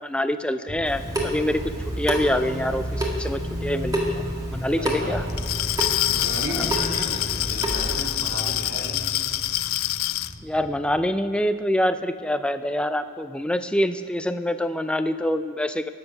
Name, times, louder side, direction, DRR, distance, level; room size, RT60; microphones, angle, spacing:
voice 1, 0.0-1.6 2.0-4.2 4.5-5.2 6.5-6.7 10.4-15.9, left 1 dB, 5° left, 10 dB, 0.4 m, -25 dB
sound 1, 0.7-11.0, equal, 35° right, 1.4 m, -34 dB
Water tap faucet / Sink (filling or washing) / Drip, 0.8-8.0, right 1 dB, 15° right, 1.9 m, -31 dB
voice 2, 4.7-5.2 6.1-9.2, right 1 dB, 80° right, -1 dB, 2.7 m, -34 dB
Glass, 5.3-10.3, left 15 dB, 75° left, 0.4 m, -26 dB
21.5 x 7.8 x 5.9 m, 2.2 s
head